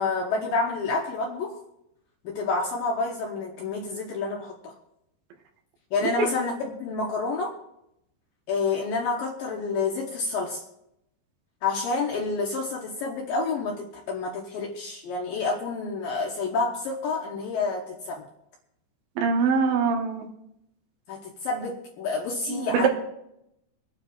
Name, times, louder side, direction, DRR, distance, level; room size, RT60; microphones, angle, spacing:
voice 1, 0.0-1.6 2.2-4.7 5.9-7.5 8.5-10.6 11.6-18.3 21.1-22.9, left 4 dB, 70° left, 0 dB, 2.2 m, -28 dB
voice 2, 19.2-20.3 22.5-22.9, right 5 dB, 85° right, 2 dB, 3.7 m, -23 dB
25.0 x 9.6 x 2.5 m, 0.80 s
omnidirectional pair, 5.2 m